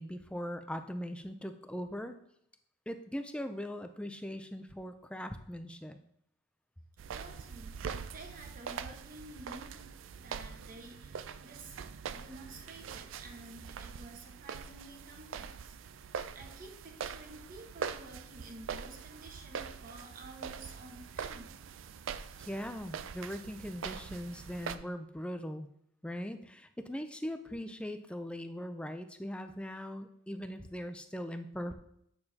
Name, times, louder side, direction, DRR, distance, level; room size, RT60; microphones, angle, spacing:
voice 1, 0.0-2.2 2.9-6.0 22.4-25.7 26.0-31.7, equal, 5° left, 8 dB, 0.4 m, -40 dB
sound 1, 7.0-24.8, right 6 dB, 70° right, 0.4 m, -43 dB
voice 2, 7.1-9.9 10.2-11.8 12.1-15.8 16.3-21.5, right 2 dB, 40° right, 2 dB, 1.2 m, -51 dB
8.7 x 6.7 x 2.8 m, 0.72 s
head